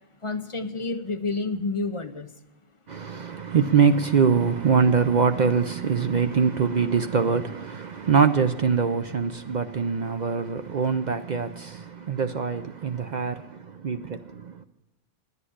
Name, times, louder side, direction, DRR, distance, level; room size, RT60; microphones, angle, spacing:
voice 1, 0.2-2.3, left 3 dB, 35° left, 0.6 m, -29 dB
voice 2, 2.9-14.6, right 6 dB, 55° right, 0.5 m, -23 dB
11.0 x 8.3 x 9.9 m
omnidirectional pair, 1.2 m